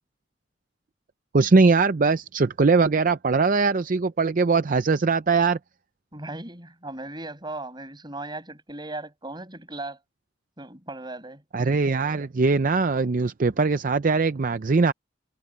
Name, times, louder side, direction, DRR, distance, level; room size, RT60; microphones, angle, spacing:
voice 1, 1.3-5.6 11.5-14.9, right 4 dB, 45° right, 0.5 m, -21 dB
voice 2, 6.1-10.0 10.6-11.4, right 2 dB, 25° right, 6.8 m, -37 dB
head